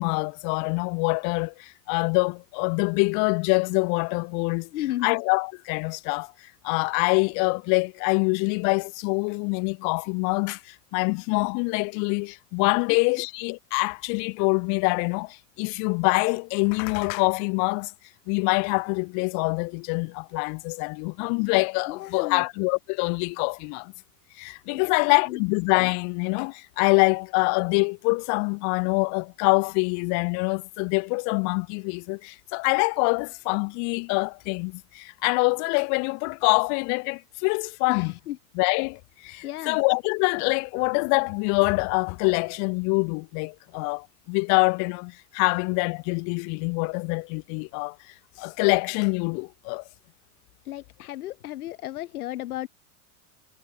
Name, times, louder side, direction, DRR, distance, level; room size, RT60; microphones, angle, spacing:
voice 1, 0.0-4.7 5.0-6.3 6.6-17.9 18.3-23.9 24.4-38.1 38.6-48.0 48.4-49.8, left 37 dB, 45° left, 0.5 m, -25 dB
voice 2, 4.7-5.2 12.9-13.3 21.9-22.5 24.7-25.4 37.9-38.4 39.4-39.9 50.6-52.7, left 14 dB, 85° left, 2.6 m, -34 dB
supercardioid pair, 125°, 44 cm